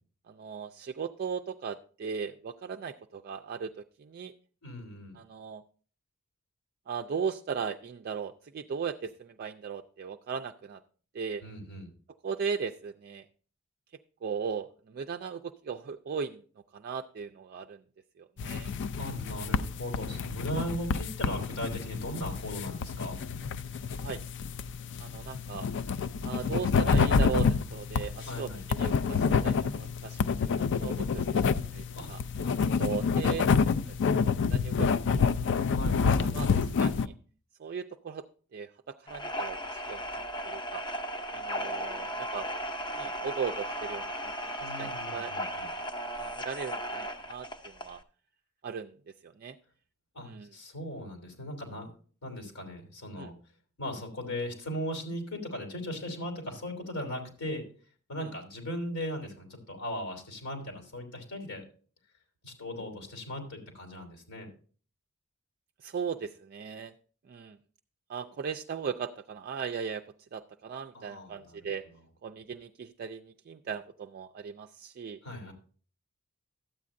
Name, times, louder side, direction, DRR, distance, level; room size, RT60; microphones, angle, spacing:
voice 1, 0.3-4.3 5.2-5.6 6.9-10.8 11.1-11.4 12.2-13.3 14.2-16.4 16.7-17.8 18.2-18.7 23.9-24.2 25.0-25.7 26.2-31.4 31.7-32.2 32.8-34.2 34.5-35.6 36.2-37.1 37.6-38.2 38.5-40.8 41.3-42.6 43.0-44.3 44.6-45.3 46.2-48.0 48.6-48.9 49.2-49.6 50.2-50.5 53.2-53.3 65.8-66.9 67.3-67.6 68.1-70.0 70.3-71.8 72.2-75.2, right 6 dB, 45° right, 5 dB, 0.3 m, -38 dB
voice 2, 4.6-5.2 11.4-11.9 19.0-23.2 28.3-28.6 31.9-32.1 32.4-32.8 35.7-36.4 44.6-45.7 50.1-51.9 52.2-53.3 53.8-57.6 58.1-61.6 62.4-64.5 70.9-71.7 75.2-75.5, equal, 90° left, 4 dB, 3.1 m, -38 dB
sound 1, 18.4-37.1, left 5 dB, 55° left, 0.4 m, -28 dB
sound 2, 39.1-48.0, equal, 20° left, 0.7 m, -36 dB
12.5 x 8.4 x 2.5 m, 0.42 s
head